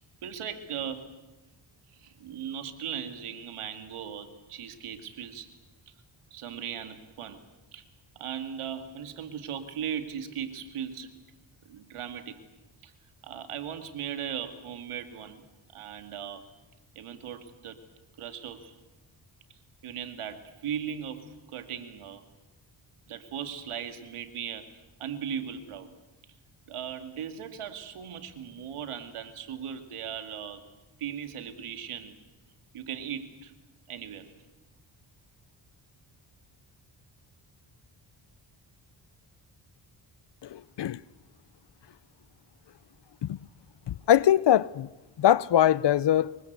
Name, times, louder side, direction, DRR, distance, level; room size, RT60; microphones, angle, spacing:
voice 1, 0.2-1.1 1.9-5.5 5.9-6.0 6.3-7.4 7.7-7.8 8.2-11.1 11.7-12.4 12.8-12.9 13.2-15.4 15.7-16.5 17.0-17.8 18.2-18.7 19.8-22.2 23.1-24.7 25.0-25.9 26.7-30.6 31.0-32.2 32.7-33.5 33.9-34.3, right 8 dB, 85° right, 2.4 m, -38 dB
voice 2, 40.4-41.0 43.2-43.4 43.9-44.9 45.2-46.4, left 11 dB, 55° left, 0.8 m, -22 dB
25.0 x 23.0 x 8.2 m
cardioid pair, 60°, 49 cm